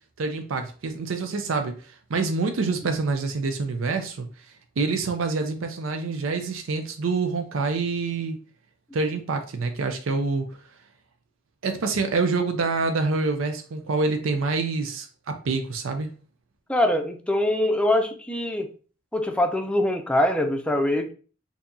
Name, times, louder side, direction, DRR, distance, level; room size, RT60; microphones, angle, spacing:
voice 1, 0.2-4.3 4.8-8.4 8.9-10.5 11.6-16.1, right 4 dB, 85° right, 6 dB, 0.5 m, -26 dB
voice 2, 16.7-18.7 19.1-21.1, left 1 dB, 5° left, 5 dB, 0.5 m, -23 dB
4.5 x 2.8 x 2.6 m, 0.39 s
head